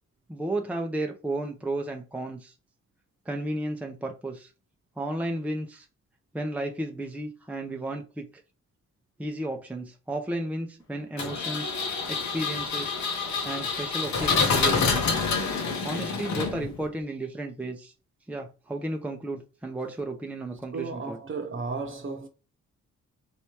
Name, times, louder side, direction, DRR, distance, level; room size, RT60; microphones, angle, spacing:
voice 1, 0.3-2.5 3.3-4.5 5.0-5.9 6.3-8.3 9.2-11.7 12.1-12.9 13.4-15.2 15.8-17.9 18.3-21.2, right 1 dB, 5° right, 0.6 m, -33 dB
Engine, 11.2-16.9, left 4 dB, 65° left, 1.0 m, -27 dB
voice 2, 20.7-22.3, right 4 dB, 40° right, 1.0 m, -34 dB
3.3 x 3.0 x 2.9 m
supercardioid pair, 50°, 30 cm